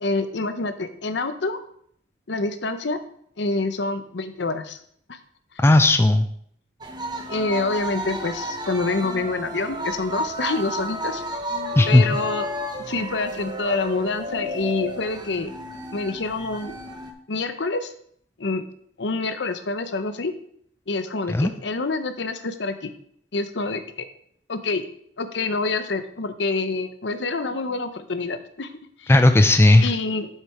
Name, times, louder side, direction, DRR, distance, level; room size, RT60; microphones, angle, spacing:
voice 1, 0.0-1.6 2.3-3.0 3.4-4.8 5.1-5.2 7.3-11.4 11.9-12.5 12.9-15.5 15.9-16.7 17.3-17.9 18.4-18.6 19.0-20.3 20.9-22.9 23.3-24.0 24.5-24.8 25.2-28.7 29.0-29.1 29.8-30.3, left 3 dB, 70° left, 10 dB, 0.7 m, -27 dB
voice 2, 5.6-6.3 11.8-12.1 21.3-21.5 29.1-29.9, left 2 dB, 15° left, 8 dB, 0.3 m, -15 dB
sound 1, 6.8-17.1, right 1 dB, 25° right, 0.9 m, -32 dB
7.4 x 6.6 x 4.8 m, 0.65 s
head